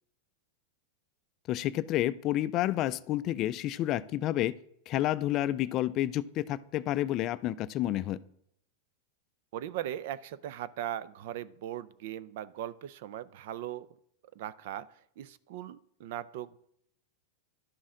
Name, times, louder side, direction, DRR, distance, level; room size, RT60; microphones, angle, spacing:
voice 1, 1.5-4.5 4.9-8.2, left 14 dB, 35° left, 15 dB, 0.3 m, -30 dB
voice 2, 9.5-13.9 14.4-14.9 15.2-16.6, right 12 dB, 60° right, 18 dB, 0.4 m, -39 dB
11.5 x 6.3 x 3.8 m, 0.71 s
supercardioid pair, 145°, 0 cm